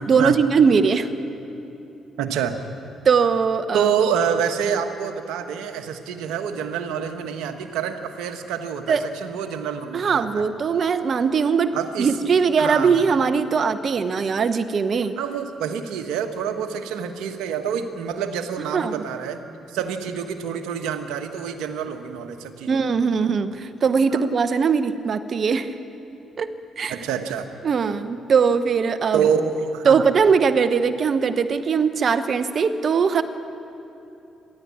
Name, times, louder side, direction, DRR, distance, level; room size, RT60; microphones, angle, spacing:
voice 1, 0.1-1.1 3.0-3.9 8.9-9.1 9.9-15.2 18.6-19.0 22.7-25.7 26.4-26.5 26.8-27.0 27.6-29.3 29.8-33.2, right 5 dB, 55° right, 12 dB, 0.9 m, -20 dB
voice 2, 2.2-2.6 3.7-10.5 11.7-12.1 12.6-13.0 15.2-19.4 19.7-22.8 24.1-24.2 26.9-27.5 29.1-30.0, right 7 dB, 85° right, 6 dB, 1.4 m, -27 dB
28.5 x 12.0 x 8.7 m, 3.0 s
supercardioid pair, 60°, 0 cm